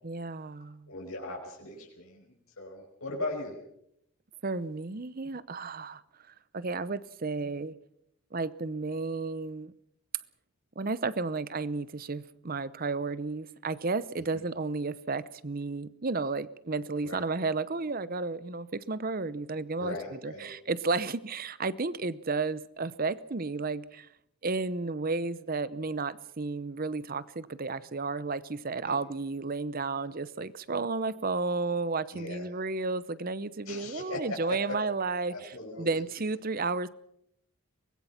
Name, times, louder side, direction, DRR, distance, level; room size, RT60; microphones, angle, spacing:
voice 1, 0.0-0.9 4.4-6.0 6.5-7.7 8.3-9.7 10.8-20.0 20.2-24.1 24.4-35.5 35.8-36.9, right 3 dB, 40° right, 0.7 m, -32 dB
voice 2, 0.9-3.6 14.2-14.4 17.0-17.2 19.8-20.5 28.9-29.0 32.1-32.5 33.7-34.8 35.3-36.0, left 2 dB, 80° left, 5.3 m, -39 dB
23.5 x 20.5 x 5.9 m
head